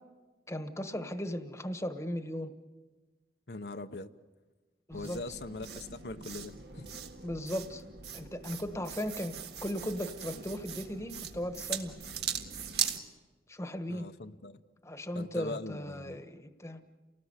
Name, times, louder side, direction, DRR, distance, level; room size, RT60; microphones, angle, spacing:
voice 1, 0.5-2.5 4.9-5.2 7.2-7.8 8.1-9.3 9.6-12.0 13.5-14.1 14.8-16.8, equal, 15° left, 9 dB, 1.3 m, -37 dB
voice 2, 3.5-4.1 4.9-6.9 13.9-14.6 15.1-16.2, left 2 dB, 70° left, 7 dB, 0.9 m, -41 dB
sound 1, 4.9-13.0, right 8 dB, 65° right, 1.7 m, -40 dB
29.5 x 19.0 x 8.1 m, 1.3 s
head